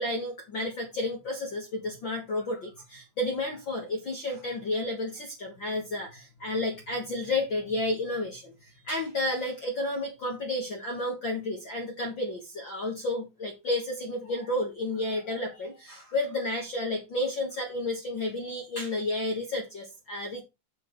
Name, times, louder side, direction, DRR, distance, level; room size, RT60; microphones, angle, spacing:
voice 1, 0.0-20.4, left 2 dB, 75° left, 1 dB, 1.0 m, -31 dB
9.5 x 8.5 x 3.2 m, 0.24 s
omnidirectional pair, 5.2 m